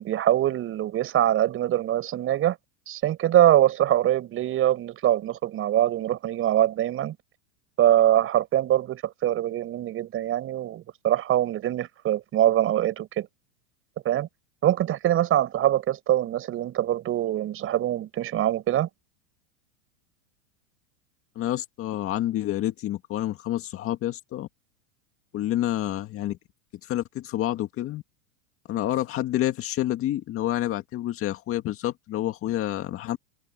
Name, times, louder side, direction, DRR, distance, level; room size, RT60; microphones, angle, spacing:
voice 1, 0.0-2.6 2.9-7.2 7.8-13.3 14.1-14.3 14.6-18.9, right 12 dB, 30° right, 5.4 m, -23 dB
voice 2, 21.4-24.5 25.3-26.4 26.8-28.0 28.7-33.2, left 13 dB, 30° left, 1.9 m, -28 dB
supercardioid pair, 140°, 44 cm